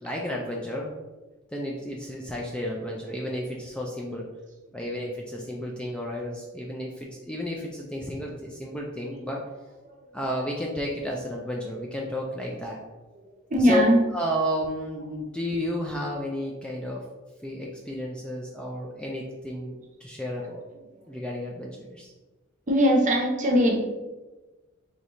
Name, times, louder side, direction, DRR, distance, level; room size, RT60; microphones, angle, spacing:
voice 1, 0.0-0.9 1.5-4.3 4.7-9.4 10.1-12.8 13.6-13.9 14.1-17.0 17.4-20.6 21.1-22.1, equal, 5° left, -2 dB, 0.3 m, -32 dB
voice 2, 13.5-14.0 22.7-23.8, equal, 35° right, 0 dB, 0.7 m, -20 dB
3.9 x 3.1 x 2.9 m, 1.2 s
head